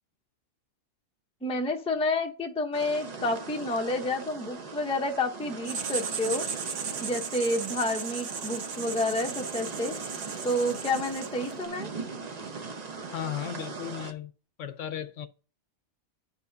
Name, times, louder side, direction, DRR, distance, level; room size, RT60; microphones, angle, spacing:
voice 1, 1.4-6.5 7.0-9.9 10.4-11.9, left 2 dB, 5° left, 0.5 m, -29 dB
sound 1, 2.7-14.1, right 4 dB, 40° right, 0.7 m, -40 dB
Writing, 5.6-11.6, right 6 dB, 65° right, 1.2 m, -36 dB
voice 2, 13.1-14.3 14.6-15.3, left 10 dB, 70° left, 0.9 m, -35 dB
9.8 x 5.5 x 2.6 m
omnidirectional pair, 1.4 m